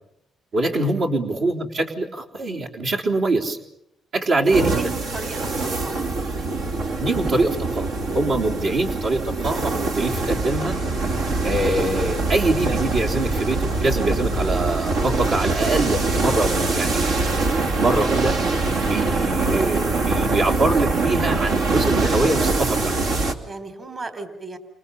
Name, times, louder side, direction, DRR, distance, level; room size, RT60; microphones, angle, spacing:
voice 1, 0.5-3.6 4.1-5.0 7.0-10.8 11.4-17.1 17.8-18.4 18.9-22.9, right 2 dB, 70° right, -1 dB, 3.8 m, -24 dB
sound 1, 4.5-23.3, right 3 dB, 85° right, 2.6 m, -23 dB
voice 2, 4.7-5.5 5.8-6.0 23.5-24.6, right 3 dB, 40° right, 9 dB, 3.4 m, -36 dB
29.5 x 27.5 x 7.1 m, 0.81 s
cardioid pair, 90°, 0 cm